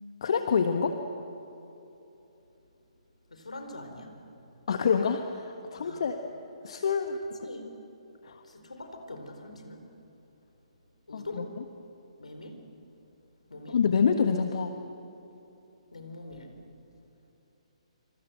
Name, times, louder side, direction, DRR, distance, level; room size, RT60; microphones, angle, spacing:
voice 1, 0.2-1.0 4.7-6.2 6.6-7.5 8.2-8.4 11.1-11.4 13.7-14.7, left 6 dB, 55° left, 6 dB, 1.4 m, -27 dB
voice 2, 3.3-4.1 5.8-6.0 6.7-6.8 7.4-7.7 8.5-9.8 11.1-11.5 12.2-12.5 13.5-13.8 15.9-16.5, left 2 dB, 75° left, 5 dB, 4.4 m, -43 dB
26.0 x 26.0 x 8.0 m, 3.0 s
figure-of-eight pair, 130°, 4 cm